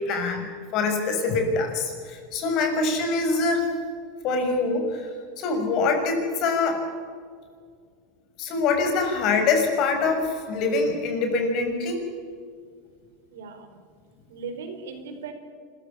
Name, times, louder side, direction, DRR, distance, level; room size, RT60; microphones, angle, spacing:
voice 1, 0.0-3.7 4.2-5.1 5.4-6.8 8.4-12.0, left 3 dB, 50° left, 4 dB, 6.5 m, -24 dB
voice 2, 13.3-13.8 14.3-15.3, right 5 dB, 85° right, 6 dB, 4.7 m, -37 dB
25.5 x 15.0 x 8.6 m, 2.1 s
supercardioid pair, 130°, 0 cm